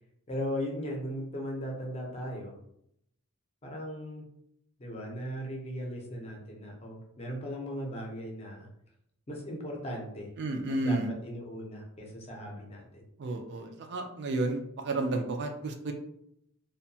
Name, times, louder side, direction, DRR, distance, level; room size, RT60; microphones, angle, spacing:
voice 1, 0.3-2.5 3.6-4.2 4.8-8.7 9.3-10.3 10.8-13.0, equal, 30° left, 0 dB, 0.6 m, -38 dB
voice 2, 10.4-11.1 13.2-15.9, right 2 dB, 50° right, 4 dB, 0.4 m, -31 dB
2.7 x 2.2 x 2.7 m, 0.74 s
head